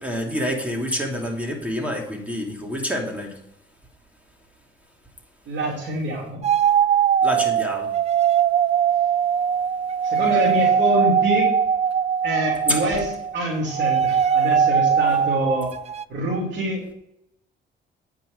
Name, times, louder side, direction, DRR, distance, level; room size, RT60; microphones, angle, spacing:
voice 1, 0.0-3.3 7.2-7.9 12.7-12.8, equal, 5° right, 1 dB, 2.8 m, -27 dB
voice 2, 5.4-6.4 10.0-11.5 12.2-15.7 16.1-16.8, right 1 dB, 65° right, -4 dB, 3.3 m, -25 dB
sound 1, 6.4-13.4 13.7-16.0, right 8 dB, 35° right, 0.4 m, -20 dB
9.3 x 6.1 x 6.4 m, 0.78 s
cardioid pair, 90°, 20 cm